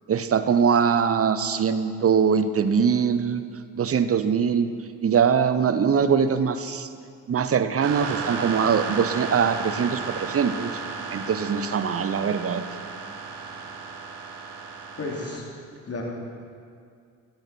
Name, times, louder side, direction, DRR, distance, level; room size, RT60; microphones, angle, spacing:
voice 1, 0.1-3.4 3.8-4.7 5.0-6.9 7.3-10.7 11.1-12.7, right 6 dB, 30° right, 12 dB, 0.9 m, -22 dB
sound 1, 7.8-15.4, right 5 dB, 65° right, 1.4 m, -34 dB
voice 2, 15.0-15.5 15.9-16.0, left 3 dB, 35° left, -2 dB, 3.5 m, -32 dB
15.0 x 15.0 x 4.5 m, 2.3 s
figure-of-eight pair, 40°, 44 cm